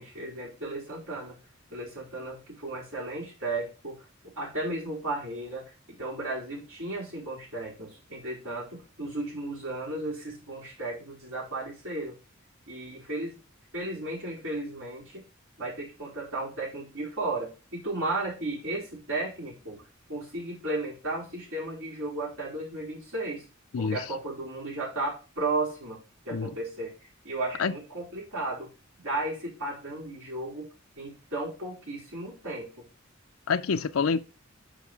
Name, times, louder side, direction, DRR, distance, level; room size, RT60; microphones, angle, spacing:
voice 1, 0.0-1.4 1.7-4.0 4.3-12.2 12.7-13.4 13.7-15.2 15.6-19.8 20.1-23.4 23.8-26.0 26.2-28.7 29.0-30.7 30.9-32.8, right 2 dB, 80° right, 4.9 m, -34 dB
voice 2, 33.5-34.2, left 5 dB, 85° left, 0.5 m, -26 dB
6.0 x 5.3 x 6.8 m
head